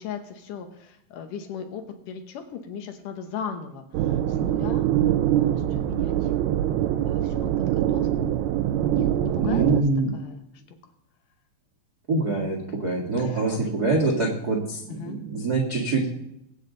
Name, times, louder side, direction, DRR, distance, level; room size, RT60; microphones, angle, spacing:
voice 1, 0.0-4.9 5.3-6.3 7.0-8.3 8.9-9.8 10.1-10.4 13.2-13.7 14.9-15.2, left 7 dB, 70° left, 6 dB, 2.1 m, -37 dB
sound 1, 3.9-9.8, right 12 dB, 80° right, 2.5 m, -24 dB
voice 2, 9.4-10.1 12.1-16.1, right 3 dB, 40° right, -1 dB, 1.4 m, -25 dB
21.5 x 8.9 x 3.9 m, 0.82 s
omnidirectional pair, 4.9 m